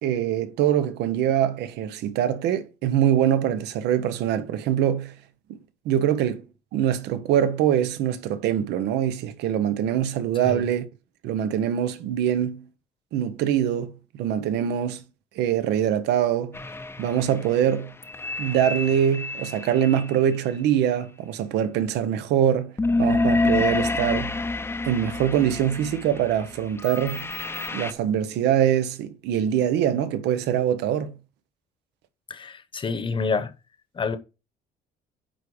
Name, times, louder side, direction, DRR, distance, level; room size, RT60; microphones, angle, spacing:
voice 1, 0.0-5.1 5.8-6.4 6.7-10.9 11.2-12.7 13.1-15.0 15.4-16.6 17.0-17.9 18.4-24.4 24.8-27.3 27.7-31.1, right 10 dB, 80° right, 0.9 m, -23 dB
sound 1, 16.5-20.1 22.8-27.9, left 3 dB, 15° left, 0.6 m, -28 dB
voice 2, 32.3-33.5 33.9-34.2, left 4 dB, 30° left, 1.0 m, -28 dB
9.0 x 3.6 x 4.9 m
cardioid pair, 110°, 17 cm